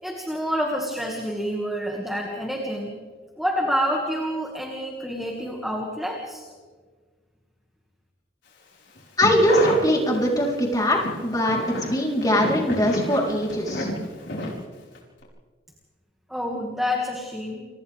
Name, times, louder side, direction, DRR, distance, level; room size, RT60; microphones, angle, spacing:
voice 1, 0.0-2.9 3.4-6.4 16.3-17.6, equal, ahead, -1 dB, 2.2 m, -28 dB
sound 1, 9.0-10.5 10.9-15.0 15.2-15.3, left 1 dB, 75° left, 5.3 m, -31 dB
voice 2, 9.2-13.9, equal, 20° left, -2 dB, 4.1 m, -21 dB
30.0 x 25.0 x 3.6 m, 1.5 s
head